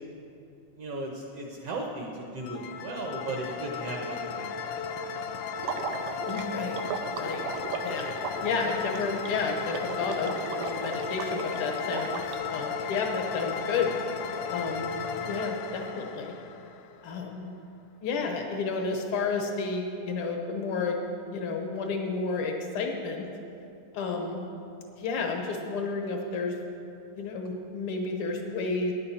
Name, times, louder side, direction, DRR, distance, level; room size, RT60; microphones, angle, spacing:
voice 1, 0.8-5.4, right 2 dB, 65° right, 0 dB, 1.6 m, -37 dB
sound 1, 2.4-17.2, left 6 dB, 85° left, 1.5 m, -35 dB
Water / Liquid, 5.6-12.4, right 6 dB, 90° right, 2.4 m, -37 dB
voice 2, 6.3-6.9 7.2-7.5 7.8-10.3 10.6-12.2 12.5-13.9 14.5-14.9 15.3-16.3 17.0-17.5 18.0-21.0 21.3-23.3 23.9-24.4 24.9-26.5 27.2-28.9, left 4 dB, 70° left, 3 dB, 1.3 m, -31 dB
14.0 x 10.0 x 4.3 m, 2.6 s
omnidirectional pair, 3.7 m